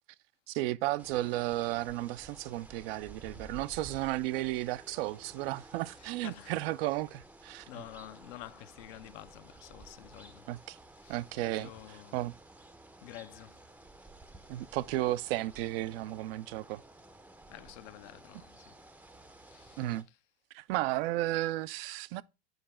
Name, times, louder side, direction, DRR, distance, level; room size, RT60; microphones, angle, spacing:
voice 1, 0.5-7.7 10.5-10.8 11.1-12.3 14.5-16.8 19.8-20.1 20.5-22.2, right 16 dB, 60° right, 0.4 m, -34 dB
sound 1, 1.0-20.0, right 2 dB, 5° right, 0.5 m, -54 dB
voice 2, 6.0-6.6 7.7-10.5 11.0-12.2 13.0-13.6 17.5-18.7 19.4-19.9, left 14 dB, 55° left, 0.6 m, -49 dB
8.0 x 4.6 x 4.2 m
hypercardioid pair, 95°, 34 cm